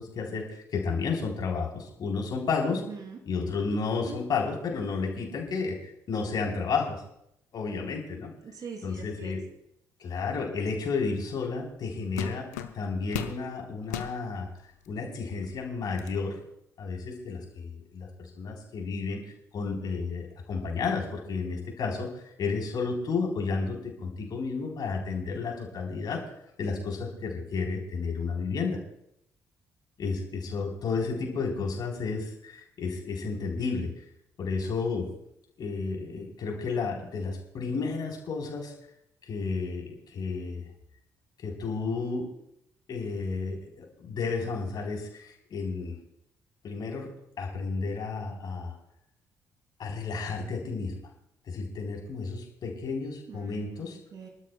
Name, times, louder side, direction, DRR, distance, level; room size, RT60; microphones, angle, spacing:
voice 1, 0.0-2.8 3.3-7.0 7.5-8.3 8.8-9.4 10.0-14.5 14.9-16.4 16.8-18.1 18.4-19.2 19.5-26.2 26.6-28.8 30.0-33.9 34.4-35.1 35.6-38.7 39.3-40.7 41.4-42.3 42.9-45.9 46.6-47.1 47.4-48.7 49.8-50.9 51.5-54.0, left 4 dB, 50° left, 0 dB, 3.7 m, -32 dB
voice 2, 2.9-3.2 3.7-4.2 8.4-9.4 53.3-54.3, right 5 dB, 45° right, 2 dB, 3.0 m, -43 dB
sound 1, 11.5-11.6 12.2-13.4 13.8-14.2 14.9-15.0 15.4-16.2, left 11 dB, 75° left, 0.7 m, -36 dB
28.0 x 12.5 x 2.2 m, 0.77 s
figure-of-eight pair, 45°, 9 cm